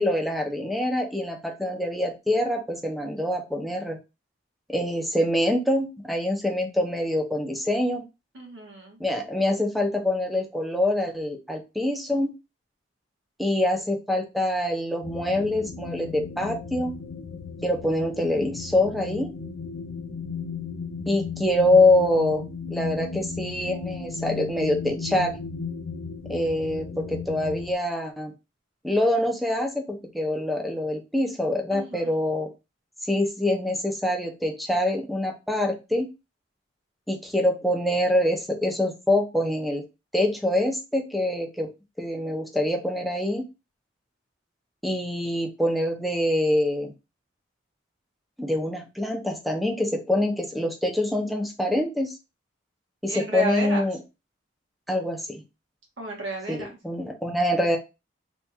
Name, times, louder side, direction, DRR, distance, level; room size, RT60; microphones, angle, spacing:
voice 1, 0.0-4.0 4.7-8.0 9.0-12.3 13.4-16.9 17.6-19.3 21.1-25.4 26.3-28.3 28.8-32.5 33.0-36.1 37.1-39.8 40.1-41.7 42.0-43.4 44.8-46.9 48.4-52.1 53.0-54.0 54.9-55.4 56.5-57.8, left 1 dB, ahead, 1 dB, 0.7 m, -25 dB
voice 2, 8.3-9.0 31.7-32.1 53.1-53.8 56.0-56.7, right 1 dB, 70° right, 0 dB, 1.5 m, -32 dB
sound 1, 15.0-27.7, left 5 dB, 90° left, 0.5 m, -35 dB
3.5 x 2.5 x 4.2 m, 0.27 s
head